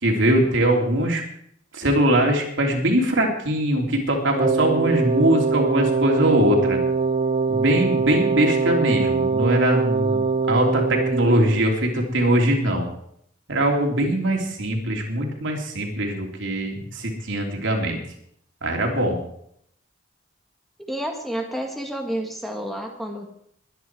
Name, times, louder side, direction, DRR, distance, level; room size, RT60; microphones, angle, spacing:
voice 1, 0.0-1.2 1.7-6.8 7.5-12.9 13.5-18.0 18.6-19.2, right 1 dB, 65° right, 1 dB, 3.3 m, -21 dB
Wind instrument woodwind instrument, 4.3-11.7, right 4 dB, 35° right, 0.6 m, -22 dB
voice 2, 20.8-23.3, right 1 dB, ahead, 2 dB, 1.8 m, -30 dB
21.5 x 10.0 x 4.7 m, 0.69 s
head